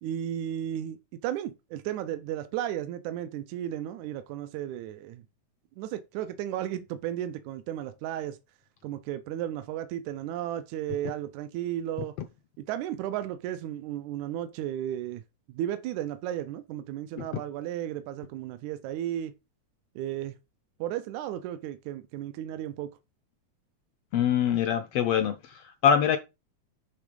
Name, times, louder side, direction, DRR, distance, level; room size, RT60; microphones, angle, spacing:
voice 1, 0.0-1.0 1.2-5.2 5.8-8.4 8.8-12.2 12.7-15.2 15.5-19.3 20.0-20.4 20.8-22.9, right 11 dB, 85° right, 2.0 m, -34 dB
voice 2, 24.1-26.2, left 8 dB, 80° left, 1.4 m, -24 dB
10.0 x 3.6 x 5.2 m
omnidirectional pair, 3.3 m